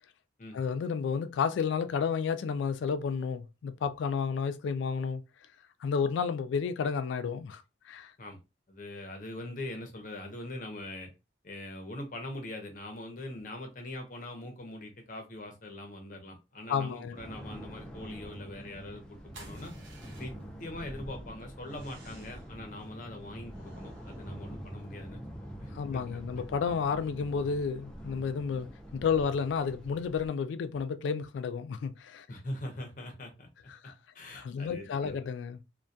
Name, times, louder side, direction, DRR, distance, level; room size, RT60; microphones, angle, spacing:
voice 1, 0.5-5.2 5.8-8.1 16.7-17.2 25.7-32.3 33.7-33.9 34.4-35.6, left 6 dB, 85° left, 0.3 m, -31 dB
voice 2, 8.7-11.1 11.4-19.7 20.2-20.3 20.6-26.2 32.3-33.5 34.1-35.3, left 1 dB, 45° left, 0.6 m, -42 dB
sound 1, 17.1-30.3, equal, 5° left, 0.3 m, -45 dB
sound 2, 19.3-20.6 21.6-22.5 23.5-25.1, right 3 dB, 90° right, 0.8 m, -56 dB
2.2 x 2.1 x 2.6 m
head